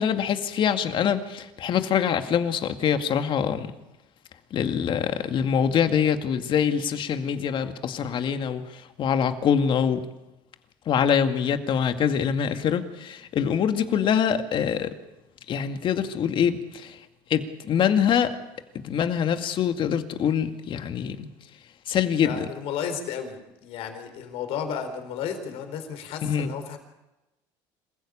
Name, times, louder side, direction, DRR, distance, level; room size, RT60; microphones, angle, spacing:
voice 1, 0.0-3.7 4.5-10.0 10.9-14.9 15.5-18.4 18.8-21.3 21.9-22.5 26.2-26.5, left 8 dB, 50° left, 8 dB, 2.1 m, -24 dB
voice 2, 22.2-26.8, left 7 dB, 65° left, 7 dB, 4.3 m, -33 dB
27.0 x 15.5 x 8.7 m, 1.0 s
supercardioid pair, 90°, 11 cm